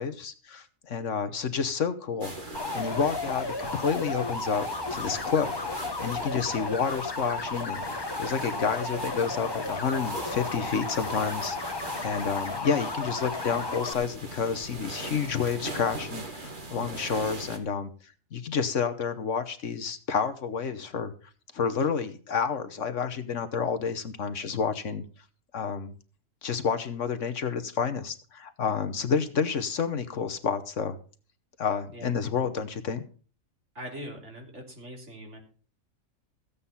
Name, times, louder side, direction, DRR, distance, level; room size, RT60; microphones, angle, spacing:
voice 1, 0.0-4.7 4.9-21.1 21.5-25.0 25.5-25.9 26.4-31.0 31.6-33.0, left 6 dB, 60° left, 11 dB, 1.3 m, -30 dB
sound 1, 2.2-17.6, right 2 dB, 35° right, 2.1 m, -41 dB
sound 2, 2.5-13.9, left 3 dB, 20° left, 0.9 m, -33 dB
voice 2, 33.8-35.4, equal, 55° right, 1 dB, 3.6 m, -41 dB
15.0 x 8.4 x 5.6 m, 0.40 s
omnidirectional pair, 1.5 m